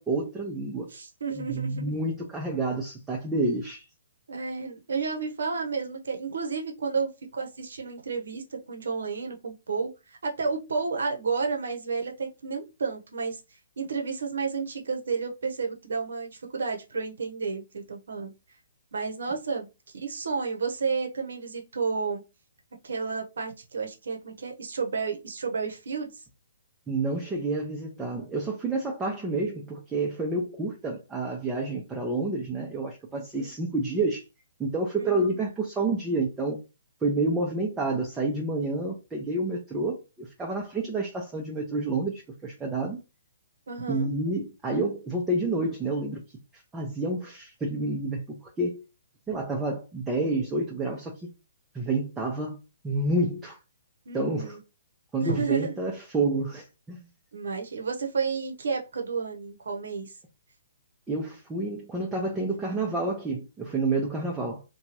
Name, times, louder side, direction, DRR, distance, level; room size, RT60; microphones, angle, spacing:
voice 1, 0.0-0.9 1.3-3.8 26.9-34.2 34.6-36.6 37.0-43.0 43.9-46.2 46.7-48.8 49.3-51.2 51.7-52.6 52.8-53.6 54.1-54.6 55.1-57.0 61.1-64.6, right 2 dB, 10° right, 0.6 m, -29 dB
voice 2, 0.9-1.9 4.3-9.9 10.2-13.4 13.8-18.3 18.9-22.2 22.8-26.2 33.1-33.5 35.0-35.4 43.7-44.1 54.1-54.6 55.2-55.8 57.3-60.1, right 5 dB, 70° right, 0.8 m, -31 dB
2.8 x 2.3 x 2.8 m
hypercardioid pair, 130°, 0 cm